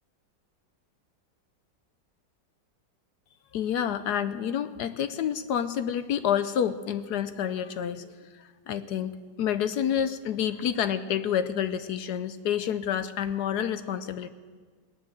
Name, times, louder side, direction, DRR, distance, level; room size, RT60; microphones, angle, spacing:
voice 1, 3.5-9.1 9.4-14.3, left 9 dB, 70° left, 12 dB, 1.1 m, -29 dB
18.5 x 10.5 x 7.5 m, 1.5 s
omnidirectional pair, 1.9 m